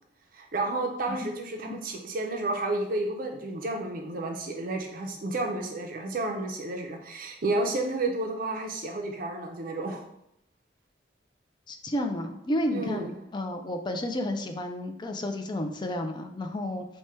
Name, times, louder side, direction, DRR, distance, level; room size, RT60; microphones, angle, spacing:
voice 1, 0.3-10.0 12.7-13.1, right 2 dB, 50° right, 2 dB, 0.5 m, -31 dB
voice 2, 11.7-16.8, left 1 dB, 25° left, 5 dB, 0.4 m, -31 dB
4.7 x 2.2 x 4.2 m, 0.78 s
head